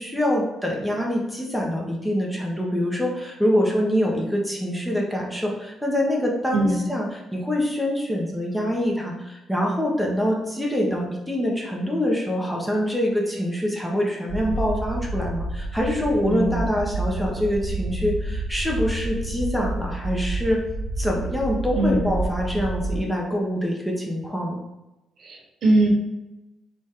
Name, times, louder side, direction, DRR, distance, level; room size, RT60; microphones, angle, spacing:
voice 1, 0.0-20.6 21.0-24.6, equal, 5° left, -2 dB, 1.0 m, -25 dB
voice 2, 6.5-6.9 16.2-16.7 21.8-22.1 25.2-25.9, right 1 dB, 60° right, 0 dB, 1.0 m, -21 dB
sound 1, 14.3-23.0, right 2 dB, 25° right, 0.8 m, -29 dB
4.0 x 3.3 x 3.6 m, 0.99 s
cardioid pair, 90°, 0 cm